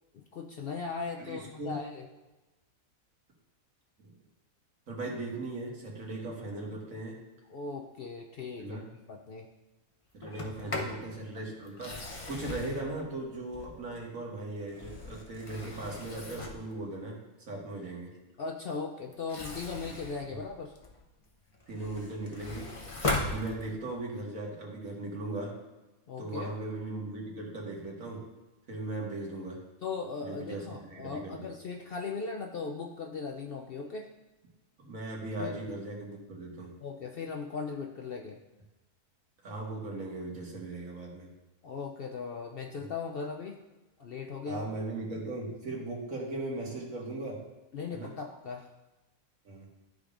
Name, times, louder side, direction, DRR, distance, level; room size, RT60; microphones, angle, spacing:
voice 1, 0.1-2.0 7.5-9.5 10.7-11.0 18.4-20.7 26.1-26.5 29.8-34.1 35.4-35.5 36.8-38.4 41.6-43.6 44.0-44.7 47.7-48.7, left 5 dB, 60° left, 2 dB, 0.6 m, -38 dB
voice 2, 1.2-1.7 4.9-7.2 8.6-8.8 10.1-12.0 12.3-17.2 17.5-18.1 20.3-20.4 21.7-22.7 23.2-25.5 26.2-28.2 28.7-29.6 30.2-31.5 34.8-36.7 39.4-41.3 44.4-47.4 47.9-48.1 49.5-49.7, right 2 dB, 75° right, -2 dB, 2.0 m, -38 dB
Sliding door, 10.2-11.0 11.7-14.0 14.6-16.7 19.1-21.0 21.5-24.0, left 2 dB, 30° left, 0.8 m, -38 dB
12.5 x 5.1 x 2.5 m, 1.1 s
omnidirectional pair, 1.4 m